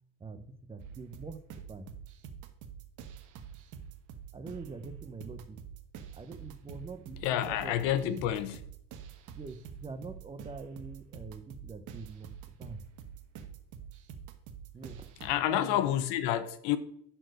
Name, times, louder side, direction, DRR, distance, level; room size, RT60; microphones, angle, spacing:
voice 1, 0.2-1.4 1.7-1.9 4.3-5.6 6.1-7.8 8.0-8.2 9.3-12.3 12.6-12.8 14.7-15.1 15.4-15.9, right 4 dB, 15° right, 0.6 m, -44 dB
sound 1, 0.8-15.3, right 7 dB, 50° right, 1.3 m, -47 dB
voice 2, 7.2-8.6 15.2-16.8, left 12 dB, 85° left, 1.1 m, -29 dB
10.5 x 4.4 x 6.4 m
cardioid pair, 140°, 38 cm